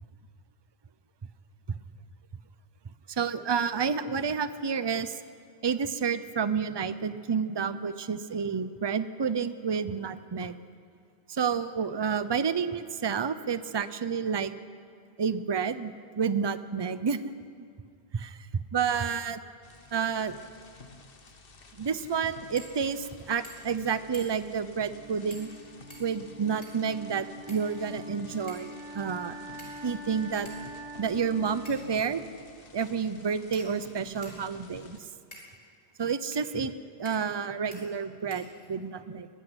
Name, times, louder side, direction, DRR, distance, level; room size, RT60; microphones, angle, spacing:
voice 1, 3.1-5.2 5.6-10.6 11.3-14.5 15.2-17.7 18.1-19.4 19.9-20.4 21.8-25.5 26.0-29.4 29.8-30.5 31.0-32.2 32.7-35.0 36.0-36.7 37.0-39.3, right 6 dB, 30° right, 13 dB, 0.6 m, -30 dB
sound 1, 19.6-35.0, left 3 dB, 60° left, 1.5 m, -52 dB
sound 2, 22.5-22.8 23.1-23.2 23.4-23.8 24.1-24.5 25.3-25.5 25.9-26.9 27.5-28.1 28.5-28.7 29.6-30.0 30.4-30.6 31.6-32.0 32.8-32.9 33.5-34.4 35.3-35.5 36.3-36.5 37.0-37.4 37.7-37.8 38.3-38.9, equal, 35° left, 4.8 m, -49 dB
Wind instrument woodwind instrument, 24.9-32.9, equal, 10° right, 3.7 m, -45 dB
23.0 x 12.0 x 9.8 m, 2.3 s
omnidirectional pair, 1.1 m